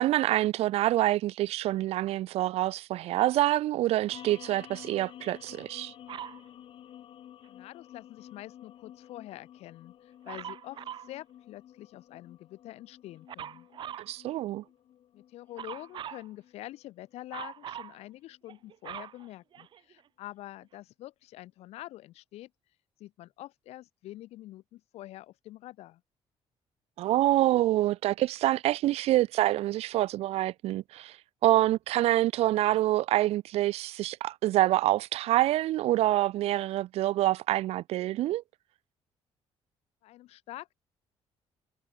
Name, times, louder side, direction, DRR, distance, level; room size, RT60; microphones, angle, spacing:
voice 1, 0.0-5.9 14.1-14.6 27.0-31.2 31.4-38.4, right 15 dB, 75° right, 1.0 m, -26 dB
sound 1, 4.1-18.7, left 11 dB, 55° left, 5.2 m, -52 dB
Dog, 6.1-6.4 10.3-11.1 13.3-14.1 15.6-16.3 17.3-18.0 18.5-20.0 20.7-20.8, right 10 dB, 50° right, 1.3 m, -41 dB
voice 2, 7.4-13.7 15.1-22.5 23.0-26.0 40.0-40.7, left 15 dB, 85° left, 6.8 m, -46 dB
cardioid pair, 150°, 10 cm